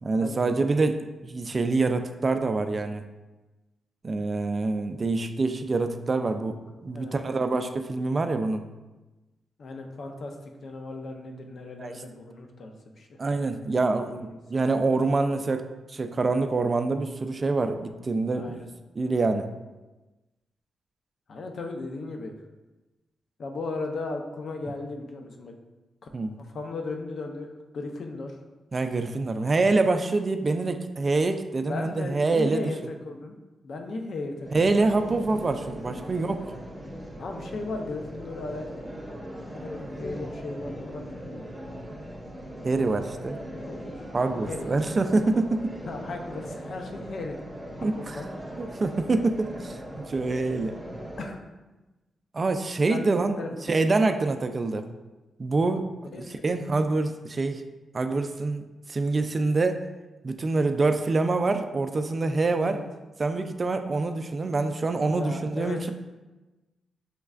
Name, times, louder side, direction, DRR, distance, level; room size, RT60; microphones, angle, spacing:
voice 1, 0.0-3.1 4.0-8.6 11.8-11.9 13.2-18.6 19.0-19.5 26.1-26.3 28.7-32.7 34.5-36.5 42.6-43.4 44.1-45.7 47.8-48.2 48.6-50.8 52.3-53.4 53.7-54.9 55.4-55.9 56.4-57.6 57.9-58.6 58.9-59.8 60.2-62.8 63.2-65.9, right 3 dB, 40° right, 8 dB, 0.3 m, -26 dB
voice 2, 6.9-7.4 9.6-13.2 14.1-14.4 18.3-18.6 21.3-22.3 23.4-25.5 26.0-26.1 26.4-28.4 31.6-33.3 33.6-34.7 37.2-38.7 39.5-41.5 43.5-44.0 44.5-44.8 45.0-45.1 45.9-47.4 47.8-48.3 51.2-51.4 52.9-53.7 54.1-54.2 56.1-56.6 62.6-62.9 65.1-65.9, left 3 dB, 65° left, 3 dB, 0.6 m, -36 dB
sound 1, 34.4-51.3, equal, 10° right, 1.0 m, -39 dB
5.8 x 3.1 x 2.4 m, 1.1 s
cardioid pair, 90°, 0 cm